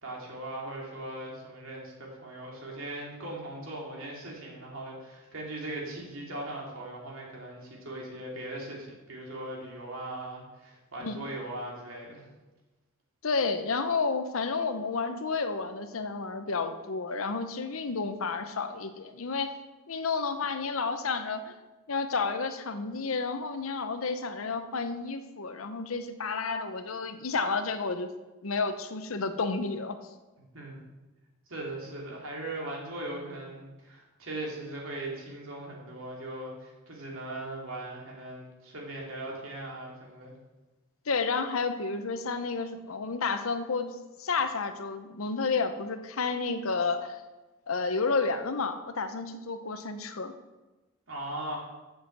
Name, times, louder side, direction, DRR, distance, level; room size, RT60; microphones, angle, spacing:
voice 1, 0.0-12.2 30.4-30.8 31.5-40.3 51.1-51.6, right 1 dB, 75° right, -2 dB, 2.8 m, -39 dB
voice 2, 13.2-19.5 19.9-21.5 21.9-28.1 28.4-30.0 41.1-43.9 44.2-47.2 47.7-50.3, left 4 dB, 85° left, 9 dB, 0.8 m, -31 dB
7.5 x 6.3 x 7.3 m, 1.1 s
head